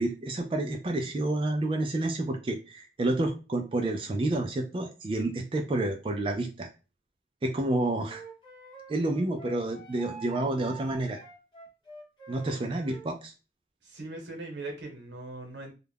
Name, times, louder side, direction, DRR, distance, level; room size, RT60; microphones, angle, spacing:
voice 1, 0.0-6.7 7.4-8.2 8.9-11.2 12.3-13.3, right 2 dB, 30° right, 4 dB, 0.3 m, -29 dB
Wind instrument woodwind instrument, 8.1-13.1, right 4 dB, 25° left, 0.7 m, -47 dB
voice 2, 13.8-15.7, right 2 dB, 85° right, 3 dB, 0.9 m, -40 dB
2.3 x 2.1 x 3.3 m, 0.31 s
head